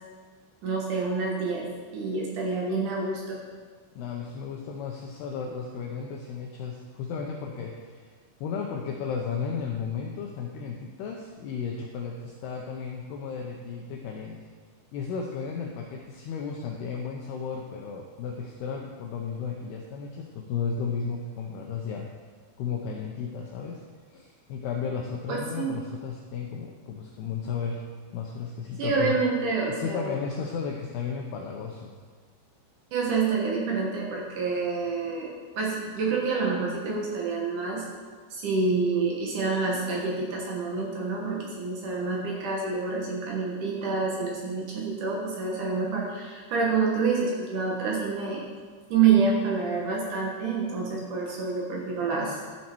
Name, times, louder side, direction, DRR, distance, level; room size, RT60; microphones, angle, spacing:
voice 1, 0.6-1.7 1.9-3.4 25.3-25.8 28.8-30.2 32.9-37.9 38.3-48.5 48.9-52.4, right 4 dB, 70° right, -2 dB, 1.9 m, -27 dB
voice 2, 4.0-8.1 8.4-14.3 14.9-22.1 22.6-23.8 24.1-27.8 28.1-29.1 29.6-31.9, left 6 dB, 85° left, 0 dB, 2.3 m, -34 dB
13.0 x 7.3 x 4.5 m, 1.5 s
omnidirectional pair, 5.7 m